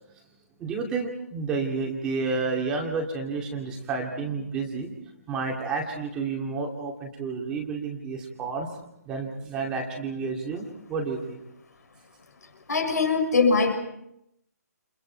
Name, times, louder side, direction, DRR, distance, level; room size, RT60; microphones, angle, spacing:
voice 1, 0.6-4.9 5.3-8.7 9.0-11.4, right 4 dB, 10° right, 0 dB, 2.4 m, -30 dB
voice 2, 12.7-13.8, left 4 dB, 70° left, 5 dB, 6.5 m, -22 dB
29.5 x 29.5 x 4.5 m, 0.80 s
hypercardioid pair, 175°, 9 cm